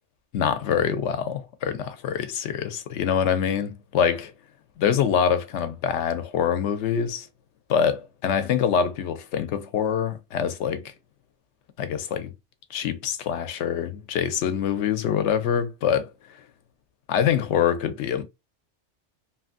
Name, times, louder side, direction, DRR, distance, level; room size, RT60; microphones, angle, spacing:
voice 1, 0.3-4.2 4.8-7.3 7.7-10.9 11.8-12.3 12.7-16.1 17.1-18.2, left 8 dB, 80° left, 0.9 m, -25 dB
2.8 x 2.5 x 2.4 m
omnidirectional pair, 1.2 m